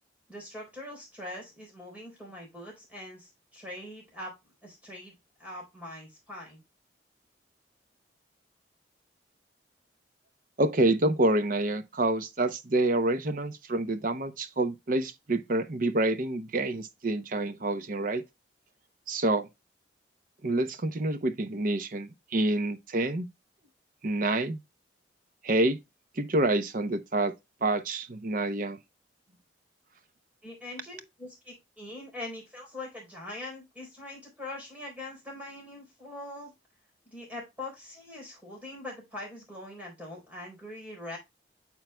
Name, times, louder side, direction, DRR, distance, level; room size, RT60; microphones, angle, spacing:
voice 1, 0.3-4.3 4.6-5.1 5.4-6.6 30.4-36.5 37.0-41.2, left 1 dB, 10° right, 3.9 m, -42 dB
voice 2, 10.6-18.2 19.1-19.5 20.4-23.3 24.0-24.6 25.4-25.8 26.1-27.3 27.6-28.8, right 2 dB, 45° right, 0.7 m, -27 dB
9.0 x 5.6 x 2.2 m
head